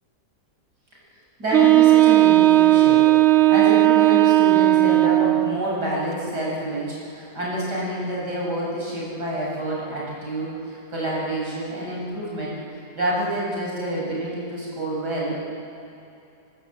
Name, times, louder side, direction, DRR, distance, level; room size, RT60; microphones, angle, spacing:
voice 1, 1.4-3.1 3.5-12.5 12.9-15.4, right 1 dB, 70° right, -5 dB, 7.9 m, -28 dB
Wind instrument woodwind instrument, 1.5-5.6, right 16 dB, 55° right, 0.8 m, -15 dB
27.5 x 18.5 x 9.0 m, 2.7 s
omnidirectional pair, 1.8 m